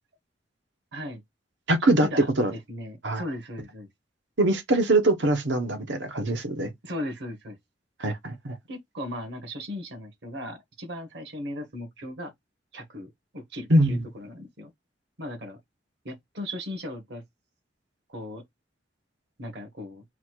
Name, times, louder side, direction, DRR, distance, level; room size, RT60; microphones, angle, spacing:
voice 1, 0.9-1.2 1.8-3.9 6.8-7.6 8.7-12.3 12.7-14.7 15.2-15.6 16.0-17.2 18.1-18.4 19.4-20.0, left 1 dB, 70° right, 1.3 m, -37 dB
voice 2, 1.7-2.1 2.4-2.5 3.0-3.2 4.4-6.7 8.0-8.6 13.7-14.0, right 1 dB, 90° right, 1.0 m, -23 dB
4.1 x 2.4 x 4.4 m
head